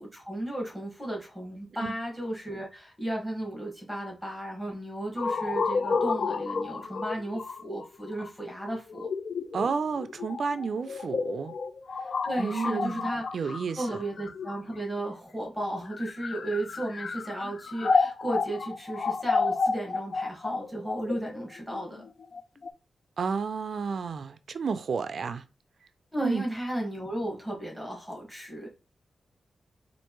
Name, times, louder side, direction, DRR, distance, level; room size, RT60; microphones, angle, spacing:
voice 1, 0.0-9.1 12.2-22.1 26.1-28.7, right 1 dB, 5° left, 1.5 m, -34 dB
sound 1, 5.2-15.0 15.8-22.7, left 4 dB, 55° left, 0.4 m, -31 dB
voice 2, 9.5-11.5 12.4-13.1 13.3-14.0 23.2-25.4 26.2-26.4, right 5 dB, 60° right, 0.3 m, -31 dB
4.5 x 2.5 x 2.9 m
wide cardioid pair, 130°, 0 cm